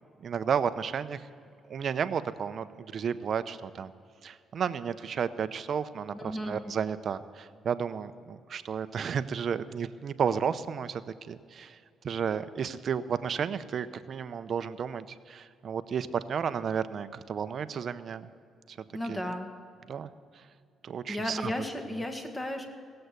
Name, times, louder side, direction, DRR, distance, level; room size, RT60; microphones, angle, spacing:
voice 1, 0.2-1.3 1.7-3.9 4.2-11.0 11.3-11.8 12.0-18.3 18.7-18.8 19.1-19.2 19.9-20.1 20.8-21.5, right 7 dB, 55° right, 12 dB, 0.7 m, -32 dB
voice 2, 6.1-6.6 18.9-19.5 21.1-22.6, left 1 dB, 20° left, 4 dB, 1.9 m, -34 dB
17.0 x 7.8 x 8.1 m, 2.4 s
cardioid pair, 90°, 0 cm